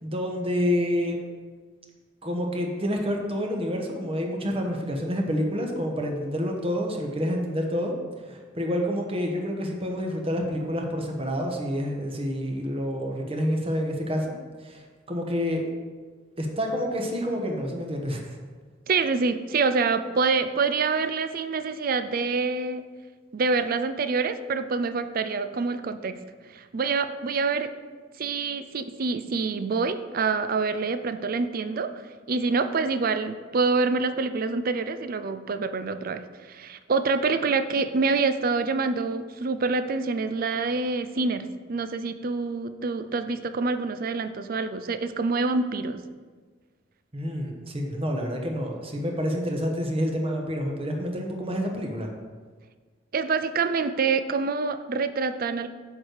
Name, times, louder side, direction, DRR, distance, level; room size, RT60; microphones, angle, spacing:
voice 1, 0.0-1.2 2.2-7.9 8.2-14.3 14.6-14.8 15.1-15.6 16.4-18.3 47.1-52.1, equal, 30° right, 1 dB, 1.1 m, -28 dB
voice 2, 18.9-22.8 23.3-26.1 26.5-27.7 28.2-31.9 32.3-46.0 53.1-55.7, right 4 dB, 50° right, 10 dB, 0.5 m, -26 dB
7.3 x 4.7 x 6.6 m, 1.5 s
head